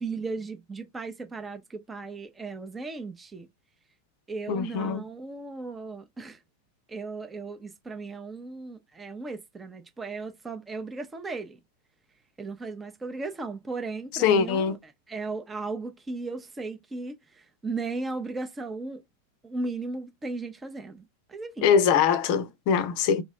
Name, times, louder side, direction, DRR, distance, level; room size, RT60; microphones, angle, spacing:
voice 1, 0.0-3.5 4.3-6.4 6.9-11.6 12.4-19.0 19.4-21.7, right 3 dB, 15° right, 0.7 m, -36 dB
voice 2, 4.5-5.0 14.2-14.8 21.6-23.2, left 7 dB, 45° left, 0.6 m, -22 dB
3.1 x 2.7 x 3.5 m
figure-of-eight pair, 90°, 0 cm